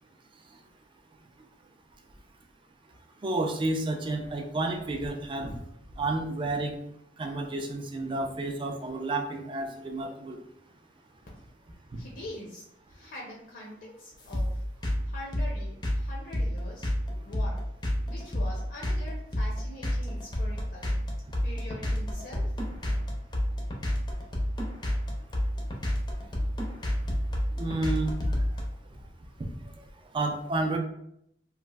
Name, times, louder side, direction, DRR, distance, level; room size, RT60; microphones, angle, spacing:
voice 1, 3.2-5.5 6.0-6.8 7.2-10.4 27.6-28.1 30.1-30.8, right 2 dB, 25° right, 4 dB, 0.3 m, -30 dB
voice 2, 12.0-14.6 15.1-16.9 17.2-17.6 18.1-21.0 21.4-22.5, left 1 dB, 65° left, -4 dB, 0.6 m, -44 dB
sound 1, 14.3-28.6, equal, 25° left, 0.5 m, -29 dB
3.1 x 2.4 x 2.3 m, 0.76 s
head